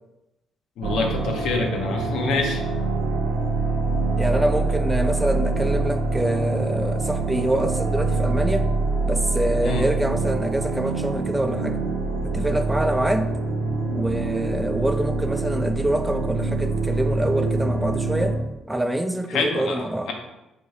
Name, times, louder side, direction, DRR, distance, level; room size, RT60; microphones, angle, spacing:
voice 1, 0.8-2.6 9.6-9.9 19.3-19.8, left 3 dB, 70° left, 2 dB, 0.6 m, -25 dB
sound 1, 0.8-18.4, right 3 dB, 80° right, 0.6 m, -25 dB
voice 2, 4.2-8.7 9.1-11.8 12.3-13.3 13.9-18.4 18.7-20.1, right 1 dB, 10° right, 7 dB, 0.3 m, -25 dB
3.5 x 2.6 x 3.2 m, 0.95 s
hypercardioid pair, 50°, 0 cm